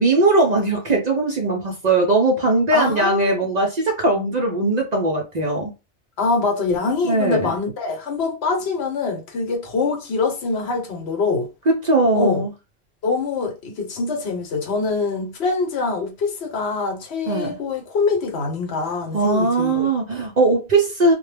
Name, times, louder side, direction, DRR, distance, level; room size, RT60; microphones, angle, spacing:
voice 1, 0.0-5.7 7.0-7.5 11.7-12.5 17.3-17.5 19.1-21.1, right 2 dB, 55° right, 0.5 m, -19 dB
voice 2, 2.7-3.4 6.2-11.5 12.2-12.4 13.0-19.9, left 4 dB, 70° left, 1.0 m, -24 dB
2.2 x 2.1 x 3.2 m
omnidirectional pair, 1.1 m